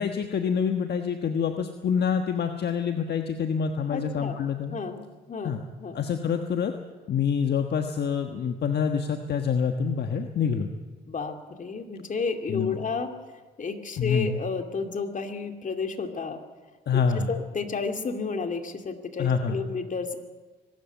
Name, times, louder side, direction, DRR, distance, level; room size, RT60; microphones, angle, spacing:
voice 1, 0.0-4.7 5.4-5.6 5.9-6.7 7.1-10.7 12.5-12.8 14.0-14.4 16.9-17.3 19.2-19.6, left 6 dB, 55° left, 6 dB, 1.4 m, -26 dB
voice 2, 3.9-4.4 4.7-5.5 5.8-6.0 11.0-13.1 13.6-16.4 16.9-20.2, left 4 dB, 40° left, 6 dB, 2.4 m, -31 dB
23.0 x 13.0 x 9.1 m, 1.3 s
cardioid pair, 90°, 20 cm